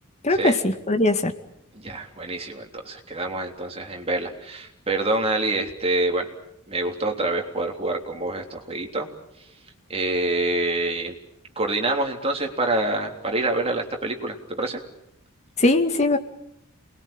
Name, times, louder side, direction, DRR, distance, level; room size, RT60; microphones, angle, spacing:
voice 1, 0.2-1.3 15.6-16.2, left 2 dB, 30° left, 5 dB, 2.2 m, -20 dB
voice 2, 1.7-6.3 6.7-9.1 9.9-11.2 11.6-14.8, right 2 dB, 25° right, 3 dB, 3.4 m, -26 dB
28.0 x 21.5 x 8.9 m, 0.78 s
head